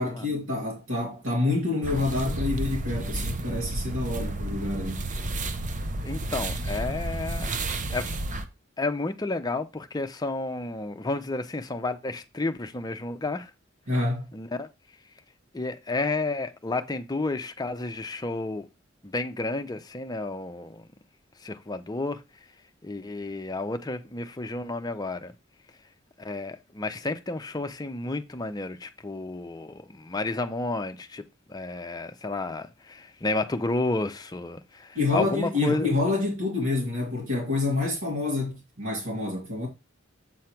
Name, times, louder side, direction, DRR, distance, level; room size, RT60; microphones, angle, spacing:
voice 1, 0.0-5.1 13.9-14.3 34.9-39.7, left 3 dB, 80° right, 2.4 m, -27 dB
sound 1, 1.8-8.5, right 2 dB, 40° right, 0.7 m, -31 dB
voice 2, 6.0-7.5 7.9-8.1 8.8-13.5 14.3-14.7 15.5-18.6 19.0-20.8 21.4-22.2 22.8-25.3 26.2-31.2 31.5-35.9, left 2 dB, 20° left, 0.6 m, -31 dB
7.7 x 3.2 x 5.8 m
head